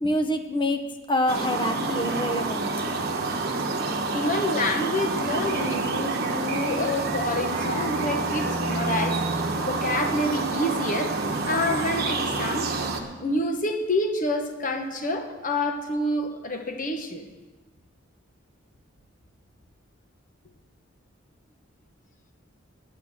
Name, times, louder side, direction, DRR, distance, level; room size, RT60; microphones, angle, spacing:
voice 1, 0.0-2.7, left 1 dB, 25° left, 7 dB, 0.9 m, -26 dB
sound 1, 1.3-13.0, right 3 dB, 55° right, 1.1 m, -28 dB
voice 2, 4.1-9.2 9.7-11.1 11.5-12.7 13.2-17.2, left 1 dB, 40° left, 5 dB, 1.2 m, -28 dB
9.6 x 8.6 x 7.3 m, 1.2 s
head